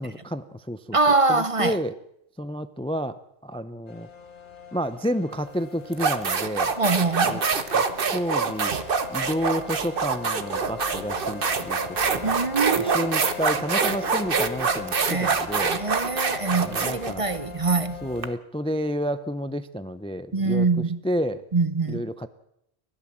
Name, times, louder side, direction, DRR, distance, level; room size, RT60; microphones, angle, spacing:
voice 1, 0.0-1.0 1.3-1.9 2.4-4.1 4.7-6.7 7.2-7.4 7.7-8.7 9.1-12.3 12.8-15.8 16.5-17.2 18.0-21.4 21.9-22.3, equal, 5° left, 0.6 m, -30 dB
voice 2, 0.9-1.8 6.8-7.4 12.2-13.1 15.1-15.4 15.7-18.0 20.3-21.0 21.5-22.0, right 3 dB, 35° right, 0.8 m, -24 dB
sound 1, 3.9-18.4, left 7 dB, 55° left, 1.5 m, -41 dB
sound 2, 5.3-5.5 5.9-18.3, right 5 dB, 60° right, 1.4 m, -25 dB
30.0 x 12.5 x 7.6 m
omnidirectional pair, 1.1 m